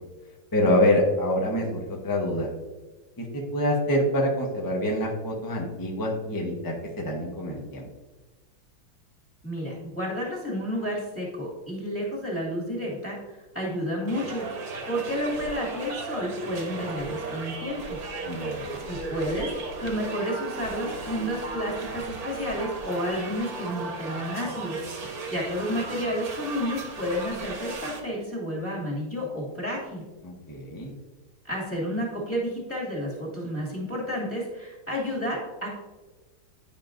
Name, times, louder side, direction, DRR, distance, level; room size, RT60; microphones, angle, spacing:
voice 1, 0.5-2.5 3.2-7.9 18.2-18.8 30.2-30.9, left 1 dB, 30° left, -1 dB, 0.4 m, -26 dB
voice 2, 9.4-13.2 13.5-18.0 18.9-19.5 19.8-30.1 31.4-35.7, equal, 5° left, -4 dB, 2.2 m, -31 dB
sound 1, 14.1-28.0, right 3 dB, 55° right, 1.4 m, -36 dB
10.5 x 5.6 x 2.6 m, 1.2 s
omnidirectional pair, 2.2 m